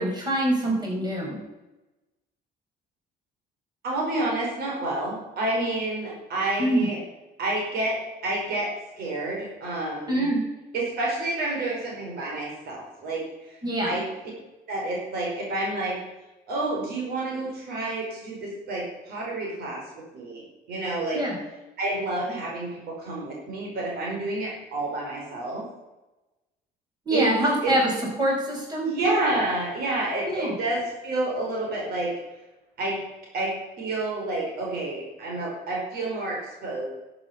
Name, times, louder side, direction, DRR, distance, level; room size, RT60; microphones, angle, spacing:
voice 1, 0.0-1.4 6.6-6.9 10.1-10.4 13.6-14.0 21.1-21.4 27.1-27.9 28.2-28.9 30.2-30.5, right 1 dB, 25° right, -2 dB, 5.7 m, -24 dB
voice 2, 3.8-7.0 7.4-8.0 8.2-8.7 9.0-10.2 10.7-13.2 13.5-13.6 13.9-14.0 14.7-16.0 16.5-19.8 20.1-20.4 20.7-21.2 21.8-25.6 27.1-27.3 27.6-27.7 28.8-32.1 32.8-33.0 33.3-36.9, right 2 dB, 70° right, -2 dB, 4.7 m, -29 dB
12.5 x 8.8 x 7.1 m, 1.1 s
cardioid pair, 110°, 17 cm